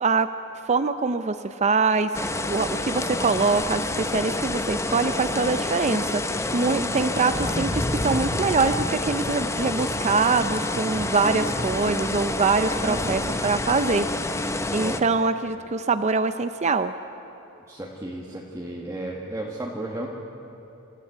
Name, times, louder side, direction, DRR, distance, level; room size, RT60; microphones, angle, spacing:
voice 1, 0.6-6.2 6.5-14.1 14.7-16.9, right 4 dB, 35° right, 10 dB, 0.5 m, -24 dB
sound 1, 2.1-15.0, left 2 dB, 15° left, 0.8 m, -28 dB
voice 2, 6.7-7.1 12.8-13.3 14.8-15.1 17.7-20.1, right 1 dB, 15° right, -3 dB, 1.7 m, -33 dB
28.0 x 13.5 x 8.6 m, 2.9 s
head